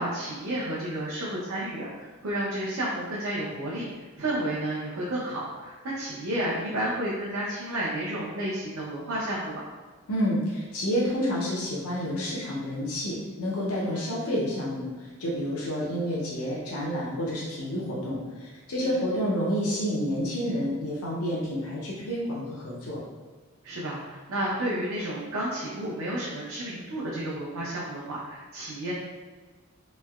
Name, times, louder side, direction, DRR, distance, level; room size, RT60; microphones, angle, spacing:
voice 1, 0.0-3.9 4.2-9.7 13.9-14.1 18.8-19.0 23.6-28.9, right 1 dB, 75° right, -6 dB, 0.6 m, -31 dB
voice 2, 10.1-23.0, equal, 85° left, -5 dB, 0.6 m, -29 dB
3.1 x 2.7 x 2.3 m, 1.4 s
head